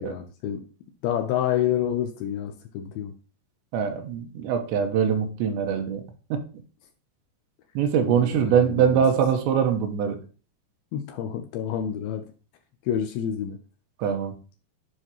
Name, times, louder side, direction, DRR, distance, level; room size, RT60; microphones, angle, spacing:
voice 1, 0.0-0.6 1.0-3.1 8.1-9.0 10.9-12.2 12.9-13.6, left 10 dB, 85° left, 6 dB, 2.1 m, -28 dB
voice 2, 3.7-6.0 6.3-6.4 7.8-10.2 14.0-14.3, right 7 dB, 85° right, 5 dB, 3.2 m, -23 dB
11.5 x 4.9 x 2.9 m, 0.38 s
omnidirectional pair, 5.1 m